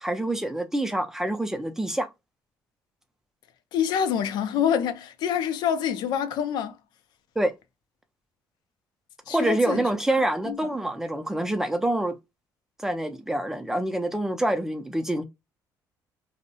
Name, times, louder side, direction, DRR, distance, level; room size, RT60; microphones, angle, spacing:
voice 1, 0.0-2.1 7.4-7.5 9.3-12.1 12.8-15.2, right 1 dB, 5° right, 0.4 m, -26 dB
voice 2, 3.7-6.7 9.3-9.9 10.5-10.6, left 8 dB, 80° left, 0.4 m, -26 dB
2.6 x 2.0 x 2.7 m
cardioid pair, 135°, 7 cm